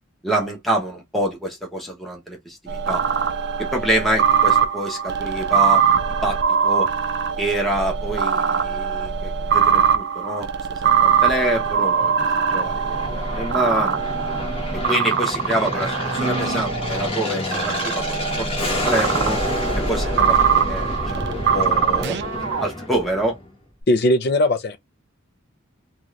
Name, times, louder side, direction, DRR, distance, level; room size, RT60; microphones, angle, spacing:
voice 1, 0.2-3.0 3.6-6.4 6.6-6.9 7.4-10.5 10.8-12.1 12.5-14.0 14.7-19.4 19.7-21.3 21.5-22.2 22.6-23.4, right 1 dB, ahead, 0.9 m, -26 dB
sound 1, 2.7-17.1 17.5-22.6, right 7 dB, 55° right, 0.4 m, -22 dB
Aircraft, 10.8-23.5, left 1 dB, 30° left, 1.2 m, -29 dB
voice 2, 23.9-24.8, left 1 dB, 55° left, 0.5 m, -18 dB
2.6 x 2.4 x 3.1 m
head